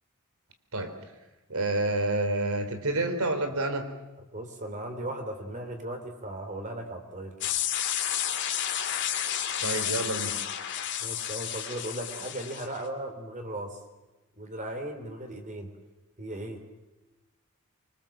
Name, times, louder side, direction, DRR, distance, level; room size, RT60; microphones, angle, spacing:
voice 1, 0.7-1.1 1.5-3.9 9.6-10.4, right 2 dB, 75° right, 8 dB, 3.7 m, -29 dB
voice 2, 4.3-7.4 11.0-13.8 14.4-15.7 16.2-16.6, right 1 dB, 35° right, 6 dB, 3.8 m, -37 dB
sound 1, 7.4-12.8, left 10 dB, 55° left, 2.5 m, -31 dB
25.5 x 24.5 x 7.5 m, 1.1 s
head